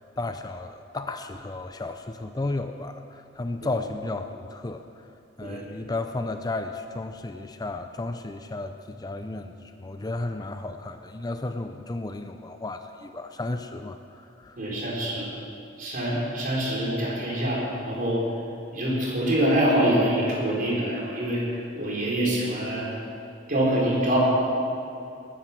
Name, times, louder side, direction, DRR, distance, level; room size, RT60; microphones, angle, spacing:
voice 1, 0.0-4.8 5.4-14.6, left 2 dB, 20° left, 7 dB, 0.5 m, -33 dB
voice 2, 14.6-15.3 15.8-18.2 18.7-21.4 21.7-22.9 23.5-24.2, right 1 dB, 45° right, -4 dB, 4.6 m, -25 dB
20.5 x 10.0 x 6.2 m, 2.6 s
head